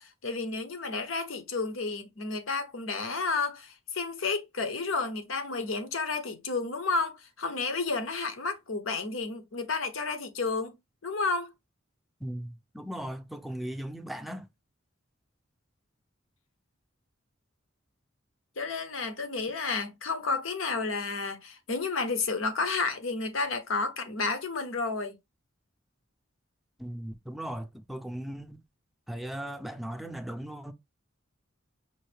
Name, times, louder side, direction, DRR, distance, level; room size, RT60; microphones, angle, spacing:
voice 1, 0.0-10.8 11.0-11.5 18.6-25.1, left 4 dB, 85° left, 0.9 m, -31 dB
voice 2, 12.2-14.5 26.8-28.6 29.1-30.7, right 1 dB, ahead, 0.5 m, -38 dB
5.4 x 2.6 x 3.3 m
head